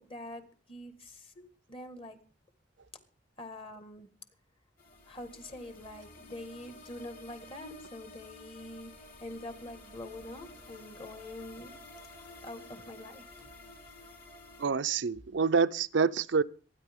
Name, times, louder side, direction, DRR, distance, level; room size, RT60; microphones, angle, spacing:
voice 1, 0.0-1.4 1.7-2.2 3.4-4.1 5.1-8.9 9.2-11.7 12.4-13.2, left 1 dB, 30° left, 1.8 m, -45 dB
sound 1, 4.8-14.7, left 2 dB, 55° left, 4.1 m, -51 dB
voice 2, 14.6-16.4, right 5 dB, 80° right, 0.6 m, -27 dB
25.5 x 10.0 x 3.7 m
head